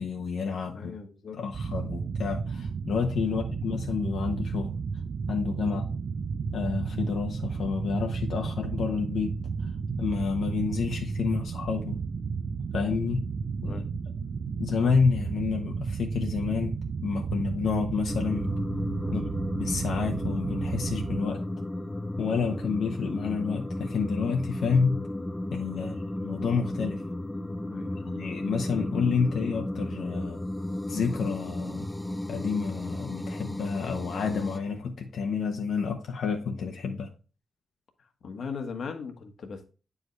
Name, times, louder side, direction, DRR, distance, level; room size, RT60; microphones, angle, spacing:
voice 1, 0.0-0.9 1.3-4.7 5.3-5.9 6.5-9.7 10.0-12.0 12.7-13.2 13.6-13.8 14.6-18.5 19.1-19.2 19.5-21.4 22.2-25.0 25.5-27.0 27.9-30.4 30.9-31.9 32.3-37.1, left 5 dB, 75° left, 2 dB, 1.0 m, -29 dB
voice 2, 0.7-1.4 3.2-3.4 5.6-5.7 13.6-13.8 19.0-19.2 25.7-26.0 27.6-28.1 38.2-39.6, left 5 dB, 60° left, 6 dB, 1.3 m, -39 dB
sound 1, 1.5-21.2, right 5 dB, 50° right, 0.5 m, -33 dB
sound 2, 18.1-34.6, left 1 dB, 10° left, 0.5 m, -34 dB
9.4 x 4.9 x 3.2 m, 0.34 s
wide cardioid pair, 175°, 0 cm